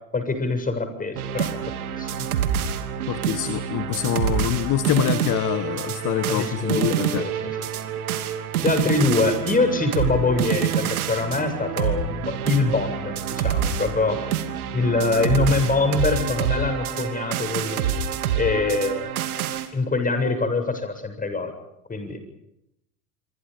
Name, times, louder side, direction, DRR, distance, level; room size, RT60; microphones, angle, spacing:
voice 1, 0.1-2.3 6.3-7.6 8.6-14.4 14.7-18.0 18.3-19.3 19.7-21.5 21.9-22.2, left 3 dB, 20° left, 7 dB, 7.6 m, -24 dB
sound 1, 1.2-19.7, right 8 dB, 75° right, 2.9 m, -27 dB
voice 2, 3.1-7.3, left 13 dB, 40° left, 13 dB, 1.5 m, -25 dB
27.0 x 25.0 x 5.3 m, 0.84 s
hypercardioid pair, 85°, 44 cm